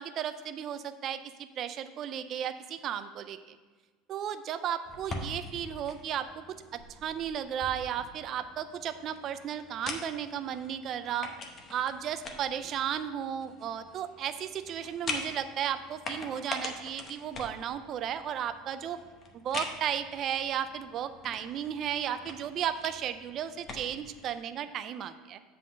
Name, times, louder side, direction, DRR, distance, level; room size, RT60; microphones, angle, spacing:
voice 1, 0.0-3.4 4.1-6.4 6.7-11.3 11.7-19.0 19.4-25.4, right 9 dB, 35° right, 10 dB, 0.3 m, -34 dB
sound 1, 4.9-24.4, left 3 dB, 25° left, 0.8 m, -44 dB
7.6 x 3.8 x 6.3 m, 1.4 s
supercardioid pair, 150°, 0 cm